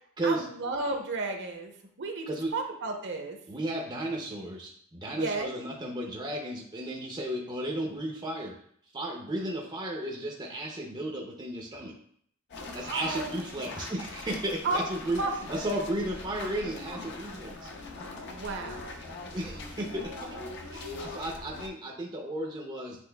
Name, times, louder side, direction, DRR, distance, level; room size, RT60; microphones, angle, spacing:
voice 1, 0.2-2.3 2.5-3.4 5.1-5.5 12.8-13.4 14.6-14.8 15.2-15.3 18.3-19.0, right 3 dB, 55° right, 3 dB, 0.7 m, -33 dB
voice 2, 3.5-8.5 8.9-11.9 12.7-15.2 15.5-17.7 19.3-20.2 20.7-23.0, right 1 dB, 20° right, 0 dB, 0.5 m, -34 dB
sound 1, 12.5-21.7, left 2 dB, 50° left, 0.6 m, -41 dB
7.7 x 3.0 x 2.2 m, 0.64 s
head